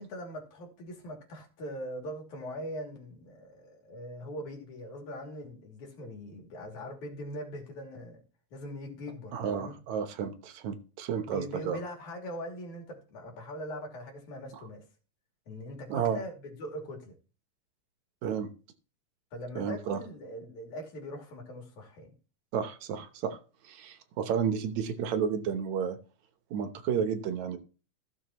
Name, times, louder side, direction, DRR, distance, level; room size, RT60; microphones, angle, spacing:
voice 1, 0.0-8.2 8.5-9.8 11.3-14.8 15.5-17.2 19.3-22.1, equal, 90° left, 4.1 m, -41 dB
voice 2, 9.3-11.8 15.9-16.2 18.2-18.5 19.6-20.0 22.5-23.4 23.6-26.0 26.5-27.6, right 7 dB, 75° right, 2.3 m, -31 dB
15.5 x 7.1 x 3.0 m
omnidirectional pair, 3.3 m